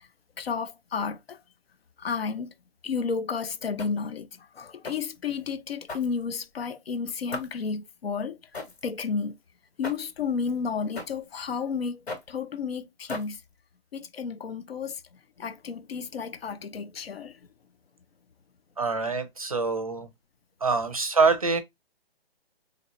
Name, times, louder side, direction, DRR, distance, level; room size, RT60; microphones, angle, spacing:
voice 1, 0.4-1.4 2.0-2.5 2.8-8.4 8.8-9.4 9.8-13.4 13.9-15.0 15.4-17.4, left 5 dB, 70° left, 0.7 m, -32 dB
sound 1, 3.8-4.1 4.8-5.2 5.9-6.6 7.3-7.7 8.5-8.9 9.8-10.2 11.0-11.3 12.1-12.4 13.1-13.5, left 2 dB, 85° left, 2.6 m, -38 dB
voice 2, 18.8-20.1 20.6-21.6, right 4 dB, 35° right, 0.5 m, -25 dB
3.3 x 3.0 x 3.7 m
hypercardioid pair, 180°, 31 cm